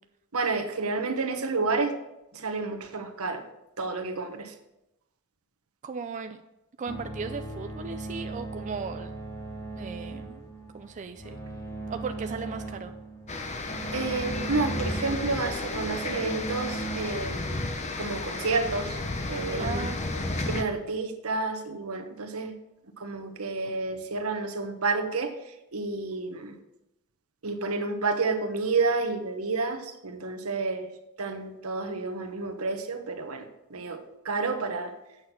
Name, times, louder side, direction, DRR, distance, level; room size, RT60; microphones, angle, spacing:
voice 1, 0.3-2.0 2.3-3.4 3.8-4.5 13.9-17.7 18.0-19.0 19.3-19.9 20.5-22.6 23.0-26.5 27.4-30.9 31.2-33.4 33.7-34.9, right 3 dB, 80° right, 5 dB, 1.2 m, -30 dB
voice 2, 5.8-6.4 6.8-9.1 9.8-10.4 10.7-11.4 11.9-12.9 19.6-20.0, right 5 dB, 35° right, 7 dB, 0.4 m, -36 dB
sound 1, 6.9-17.0, right 3 dB, 15° left, 2.3 m, -38 dB
sound 2, 13.3-20.6, left 2 dB, 30° left, 0.9 m, -32 dB
8.6 x 6.2 x 5.8 m, 0.91 s
head